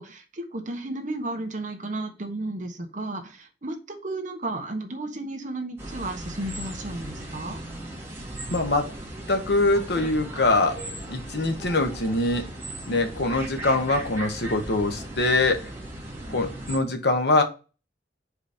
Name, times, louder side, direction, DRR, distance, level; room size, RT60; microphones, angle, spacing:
voice 1, 0.0-7.6, right 2 dB, 45° right, 1.2 m, -33 dB
sound 1, 5.8-16.8, right 1 dB, 15° right, 2.0 m, -37 dB
voice 2, 8.5-8.9 9.3-10.8 11.1-12.5 12.9-15.7 16.3-17.4, left 2 dB, 65° left, 1.1 m, -23 dB
4.9 x 4.1 x 5.0 m
head